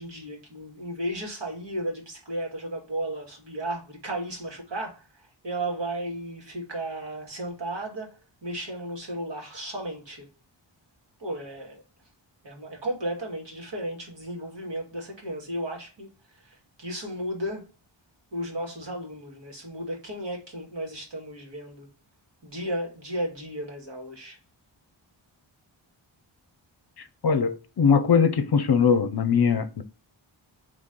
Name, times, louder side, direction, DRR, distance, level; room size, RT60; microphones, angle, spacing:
voice 1, 0.0-10.3 11.2-11.8 12.4-17.7 18.3-21.9 22.4-24.4, right 1 dB, 65° right, 2.2 m, -34 dB
voice 2, 27.2-29.8, left 6 dB, 55° left, 0.6 m, -21 dB
4.2 x 3.3 x 3.7 m
wide cardioid pair, 85°, 47 cm